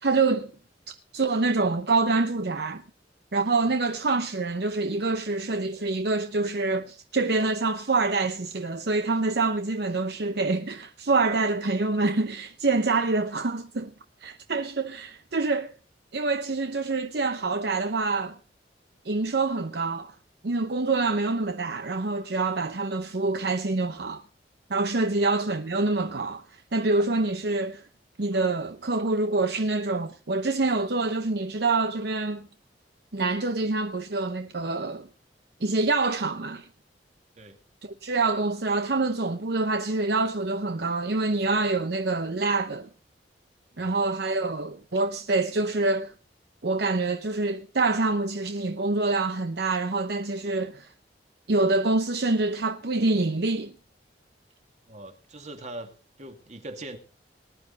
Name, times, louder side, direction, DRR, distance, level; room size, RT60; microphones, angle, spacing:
voice 1, 0.0-0.5 1.1-2.8 3.3-13.9 14.2-15.7 16.1-18.4 19.0-20.1 20.4-24.2 24.7-26.4 26.7-27.8 28.2-32.5 33.1-35.1 35.6-36.7 38.0-42.9 43.8-46.1 46.6-50.9 51.5-53.7, right 3 dB, 65° right, 0.8 m, -26 dB
voice 2, 43.7-44.0 54.9-55.9 56.2-57.0, right 1 dB, 40° right, 2.3 m, -41 dB
19.5 x 10.5 x 4.1 m
head